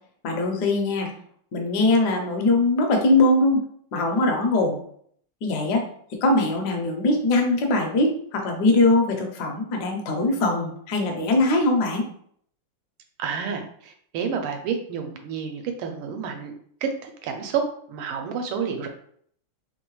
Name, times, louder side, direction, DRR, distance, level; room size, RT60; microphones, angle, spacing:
voice 1, 0.2-1.1 1.5-3.6 3.9-4.8 5.4-5.8 6.2-12.1, left 2 dB, 65° left, 1 dB, 1.2 m, -21 dB
voice 2, 13.2-16.5 16.8-18.9, right 6 dB, 80° right, 4 dB, 1.5 m, -29 dB
3.7 x 3.0 x 3.1 m, 0.62 s
omnidirectional pair, 2.4 m